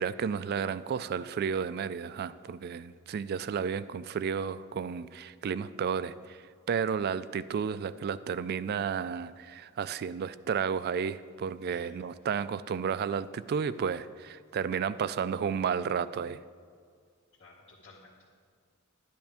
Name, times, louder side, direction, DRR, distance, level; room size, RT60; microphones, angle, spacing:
voice 1, 0.0-16.4, right 6 dB, 50° right, 15 dB, 0.3 m, -32 dB
voice 2, 17.4-18.2, left 2 dB, 55° left, -8 dB, 1.6 m, -54 dB
11.5 x 10.5 x 3.5 m, 2.1 s
head